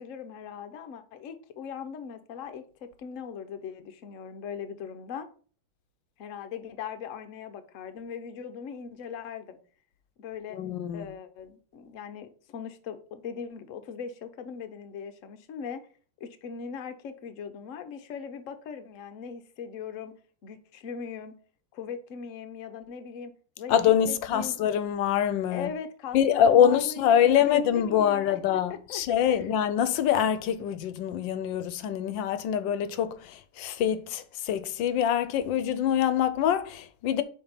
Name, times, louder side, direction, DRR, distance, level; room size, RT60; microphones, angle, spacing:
voice 1, 0.0-5.3 6.2-9.6 10.2-10.6 10.9-15.9 16.2-20.1 20.4-21.3 21.7-23.8 24.1-24.6 25.5-28.4 28.7-29.5, left 7 dB, 55° left, 0.9 m, -40 dB
voice 2, 10.6-11.1 23.7-25.7 26.1-37.2, left 9 dB, 75° left, 1.3 m, -24 dB
5.7 x 4.3 x 5.6 m
omnidirectional pair, 2.2 m